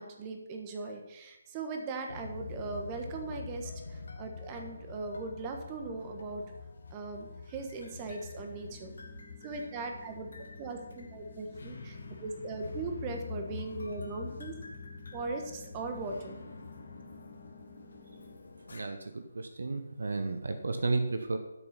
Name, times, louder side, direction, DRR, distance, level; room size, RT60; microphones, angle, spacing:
voice 1, 0.0-6.4 6.9-8.9 9.4-10.3 10.6-14.5 15.1-16.4, right 3 dB, 20° right, 3 dB, 1.5 m, -39 dB
sound 1, 2.1-18.8, left 4 dB, 55° left, 1.8 m, -46 dB
sound 2, 8.4-18.4, left 3 dB, ahead, 1.9 m, -56 dB
voice 2, 18.7-21.4, right 3 dB, 60° right, 8 dB, 0.9 m, -33 dB
12.5 x 6.9 x 5.7 m, 0.99 s
figure-of-eight pair, 145°, 0 cm